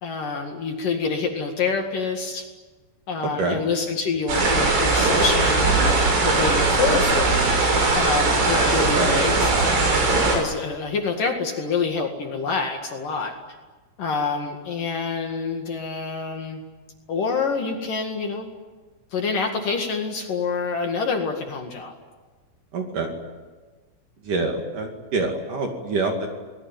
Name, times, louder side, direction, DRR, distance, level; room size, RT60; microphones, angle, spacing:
voice 1, 0.0-2.5 3.1-6.0 6.2-7.5 7.9-13.3 14.0-16.6 17.1-18.5 19.1-21.9, left 4 dB, 55° left, 3 dB, 3.2 m, -27 dB
voice 2, 3.2-3.6 8.8-9.1 22.7-23.1 24.2-26.3, right 3 dB, 50° right, 3 dB, 3.5 m, -26 dB
sound 1, 4.3-10.4, right 3 dB, 85° right, 8.6 m, -20 dB
28.5 x 20.5 x 9.2 m, 1.3 s
omnidirectional pair, 5.5 m